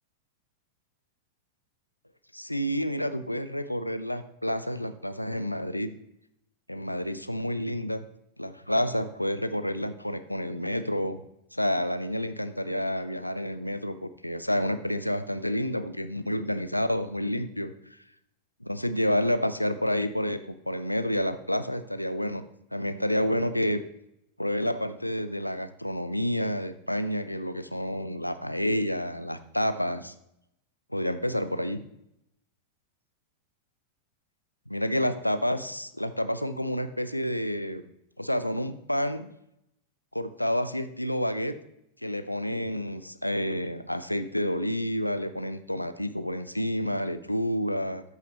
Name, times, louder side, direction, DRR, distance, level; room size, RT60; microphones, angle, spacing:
voice 1, 2.3-5.9 6.7-8.0 8.4-11.2 11.5-17.7 18.6-20.4 20.7-22.4 22.7-23.8 24.4-30.1 30.9-31.8 34.7-37.8 38.2-39.3 40.1-41.6 42.0-48.0, equal, 90° left, 11 dB, 0.6 m, -29 dB
13.5 x 5.8 x 3.0 m, 0.79 s
figure-of-eight pair, 90°, 0 cm